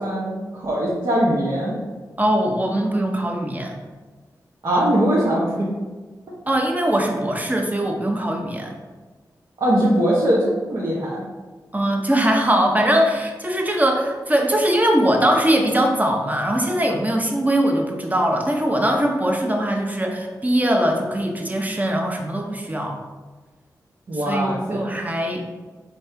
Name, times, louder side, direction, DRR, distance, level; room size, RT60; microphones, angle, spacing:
voice 1, 0.0-1.8 4.6-5.7 9.6-11.2 24.1-24.8, right 1 dB, 65° right, -6 dB, 1.1 m, -21 dB
voice 2, 2.2-3.8 6.5-8.7 11.7-23.0 24.1-25.5, right 1 dB, 20° right, 2 dB, 0.8 m, -21 dB
4.1 x 3.5 x 3.4 m, 1.3 s
cardioid pair, 40°, 8 cm